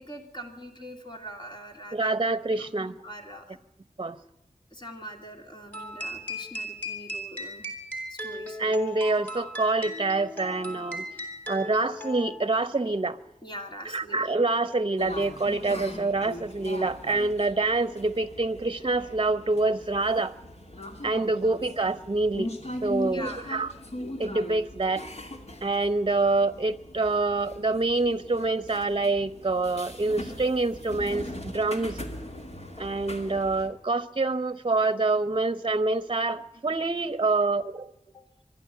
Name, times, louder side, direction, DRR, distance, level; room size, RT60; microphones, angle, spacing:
voice 1, 0.0-2.1 2.6-2.7 3.0-3.6 4.7-7.7 8.1-8.6 13.4-14.3 21.2-21.3 23.0-23.6 38.1-38.2, right 1 dB, 35° left, 2 dB, 2.7 m, -42 dB
voice 2, 1.9-3.0 4.0-4.2 8.6-11.0 11.5-13.2 13.8-20.3 21.0-22.5 22.8-23.7 24.2-25.0 25.6-32.0 32.8-37.9, right 3 dB, 40° right, 15 dB, 0.8 m, -26 dB
sound 1, 5.7-12.6, equal, 15° left, 3.7 m, -37 dB
sound 2, 15.0-33.7, left 1 dB, 55° left, 2.5 m, -40 dB
24.0 x 12.0 x 9.1 m, 0.84 s
wide cardioid pair, 80°, 13 cm